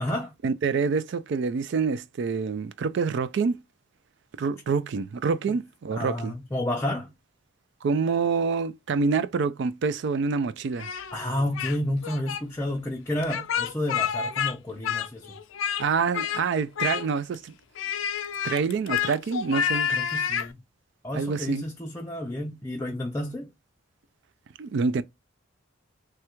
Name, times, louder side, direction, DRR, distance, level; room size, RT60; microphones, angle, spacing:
voice 1, 0.4-3.6 4.4-6.3 7.8-10.9 15.8-17.5 18.4-19.9 21.1-21.6 24.6-25.0, right 5 dB, 60° right, 0.3 m, -26 dB
voice 2, 5.9-7.1 11.1-15.3 19.9-20.6 21.0-23.5, left 1 dB, 15° left, 0.4 m, -30 dB
Speech, 10.8-11.8 12.0-12.4 13.2-14.6 14.8-15.9 16.1-16.4 16.8-17.4 17.8-20.5, left 8 dB, 80° left, 0.4 m, -29 dB
3.2 x 2.3 x 2.9 m
head